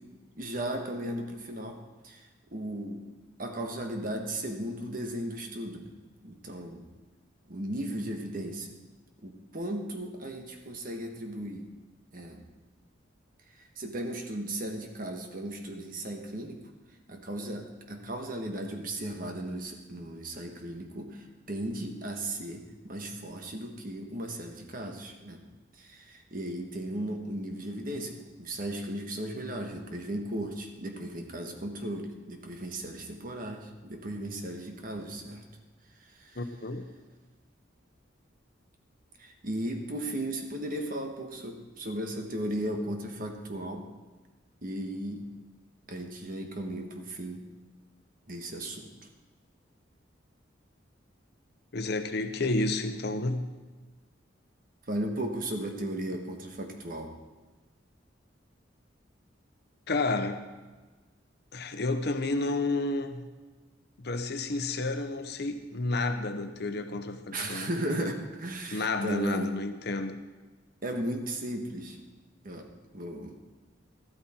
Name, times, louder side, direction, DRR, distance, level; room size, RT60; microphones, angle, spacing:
voice 1, 0.3-3.0 3.4-5.9 6.2-6.9 7.5-8.8 9.2-11.6 12.1-12.4 13.6-16.6 17.1-25.4 25.8-35.4 36.0-36.4 39.2-43.9 44.6-45.3 45.9-47.4 48.3-48.9 54.9-57.1 67.3-69.5 70.8-72.0 72.4-72.7 72.9-73.4, right 1 dB, 50° right, 1.4 m, -36 dB
voice 2, 36.4-36.9 51.7-53.5 59.9-60.4 61.5-63.3 64.0-67.7 68.7-70.2, left 2 dB, 60° left, 0.9 m, -31 dB
13.0 x 12.0 x 4.4 m
head